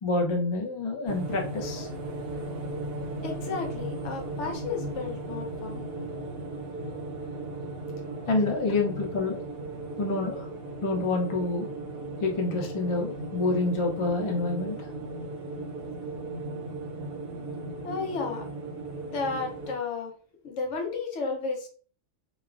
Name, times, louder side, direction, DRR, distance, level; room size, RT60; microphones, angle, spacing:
voice 1, 0.0-1.9 8.3-9.4 10.0-10.5 10.8-11.7 12.2-14.8, left 3 dB, 40° left, 1 dB, 0.4 m, -27 dB
sound 1, 1.1-19.7, right 2 dB, 60° right, 0.8 m, -36 dB
voice 2, 3.2-5.9 17.8-18.5 18.9-20.1 20.4-21.7, left 4 dB, 70° left, 3 dB, 0.9 m, -33 dB
3.1 x 2.2 x 2.4 m, 0.42 s
omnidirectional pair, 1.3 m